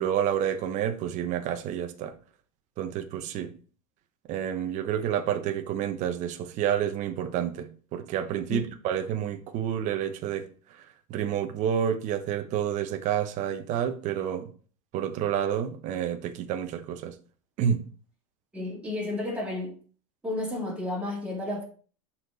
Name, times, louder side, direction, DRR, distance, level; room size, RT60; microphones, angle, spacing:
voice 1, 0.0-2.1 2.8-3.5 4.3-14.5 14.9-17.2 17.6-17.8, right 9 dB, 45° right, 0.9 m, -29 dB
voice 2, 18.5-19.8 20.2-21.6, left 2 dB, 5° right, 2.8 m, -32 dB
6.5 x 4.3 x 4.0 m
supercardioid pair, 125°, 18 cm